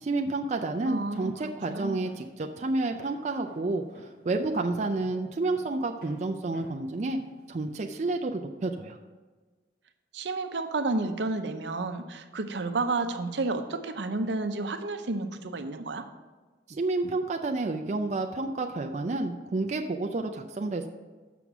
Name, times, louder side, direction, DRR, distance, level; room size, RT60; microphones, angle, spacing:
voice 1, 0.0-7.2 7.5-9.0 16.7-20.9, right 2 dB, 40° right, 4 dB, 0.4 m, -30 dB
voice 2, 0.9-1.3 1.7-2.1 10.1-16.0, right 3 dB, 80° right, 8 dB, 0.7 m, -31 dB
Walk footsteps, 1.1-8.1, equal, 55° left, 1.8 m, -53 dB
7.1 x 6.0 x 5.9 m, 1.3 s
head